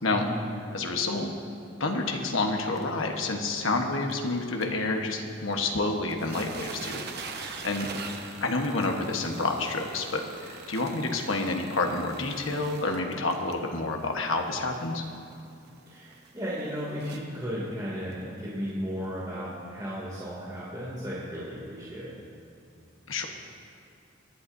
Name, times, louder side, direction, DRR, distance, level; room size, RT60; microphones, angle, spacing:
voice 1, 0.1-0.4 7.8-7.9 15.9-22.1, equal, 20° right, -8 dB, 2.6 m, -35 dB
voice 2, 0.7-1.3 1.8-7.0 7.6-7.9 8.4-15.0 23.1-23.3, left 3 dB, 70° left, 3 dB, 1.3 m, -29 dB
sound 1, 2.8-2.9 3.3-3.4 3.7-3.8 4.1-4.2 4.6-4.7 5.5-5.6 5.9-17.4 18.1-18.2 18.7-18.8, right 4 dB, 55° right, 1.0 m, -43 dB
24.0 x 11.0 x 2.7 m, 2.5 s
head